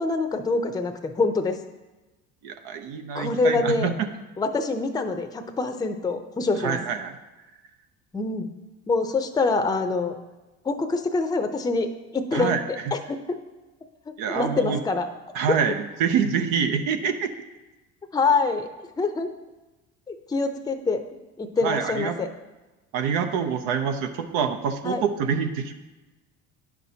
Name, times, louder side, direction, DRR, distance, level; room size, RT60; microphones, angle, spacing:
voice 1, 0.0-1.6 3.1-3.9 4.4-6.8 8.1-8.5 8.9-10.1 10.6-11.9 12.1-12.6 12.9-13.4 14.1-15.1 15.5-15.6 18.1-18.7 19.0-19.3 20.1-21.0 21.4-22.3 24.8-25.0, left 3 dB, 10° left, 6 dB, 0.5 m, -25 dB
voice 2, 2.4-3.9 6.6-7.1 12.3-12.9 14.2-14.8 15.3-17.3 21.6-22.2 22.9-25.7, right 7 dB, 85° right, 7 dB, 0.7 m, -26 dB
9.4 x 5.8 x 2.8 m, 1.1 s
supercardioid pair, 90°, 33 cm